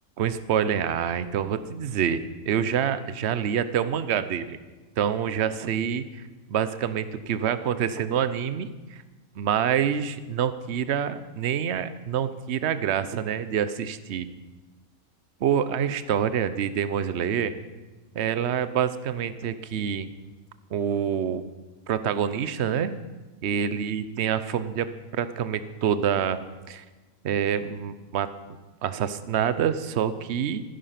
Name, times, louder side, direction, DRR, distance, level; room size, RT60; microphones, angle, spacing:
voice 1, 0.2-2.2 2.5-4.6 5.0-6.2 6.5-9.0 9.4-14.3 15.4-17.5 18.1-20.1 20.7-21.5 21.9-22.9 23.4-24.9 25.2-26.4 26.7-26.8 27.2-28.3 28.8-30.6, right 8 dB, 55° right, 13 dB, 1.0 m, -26 dB
15.5 x 10.5 x 5.9 m, 1.2 s
omnidirectional pair, 1.5 m